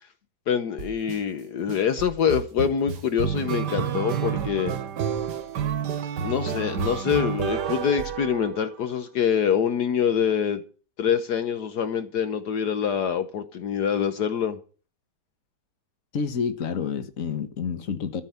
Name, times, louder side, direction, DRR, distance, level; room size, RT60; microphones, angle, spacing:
voice 1, 0.5-4.8 6.2-10.6 11.0-14.6, left 8 dB, 70° left, 1.5 m, -25 dB
sound 1, 0.8-1.2 1.7-8.9, right 8 dB, 80° right, 1.7 m, -29 dB
voice 2, 16.1-18.2, left 6 dB, 50° left, 1.7 m, -29 dB
14.5 x 5.8 x 9.3 m
omnidirectional pair, 1.8 m